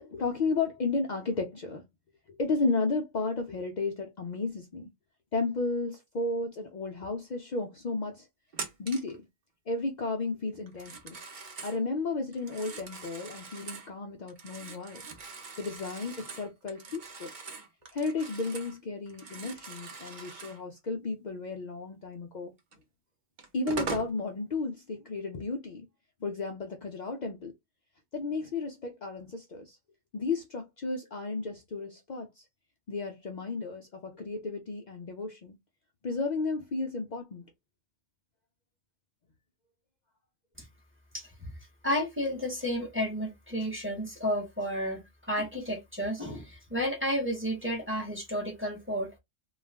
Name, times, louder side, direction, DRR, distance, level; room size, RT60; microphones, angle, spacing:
voice 1, 0.0-1.8 2.4-4.9 5.3-8.3 8.8-9.3 9.7-11.2 11.6-15.0 15.6-17.3 17.9-22.5 23.5-25.9 26.2-27.5 28.1-29.8 30.1-32.4 32.9-35.5 36.0-37.4, left 3 dB, 75° left, 0.4 m, -33 dB
Telephone, 8.5-9.2 10.7-11.8 12.3-13.9 14.3-18.8 19.1-20.6 22.7-22.8 23.4-24.1, right 4 dB, 50° right, 0.7 m, -42 dB
voice 2, 41.1-41.5 41.8-45.0 45.3-49.1, equal, 10° right, 0.8 m, -32 dB
2.4 x 2.3 x 3.2 m
omnidirectional pair, 1.3 m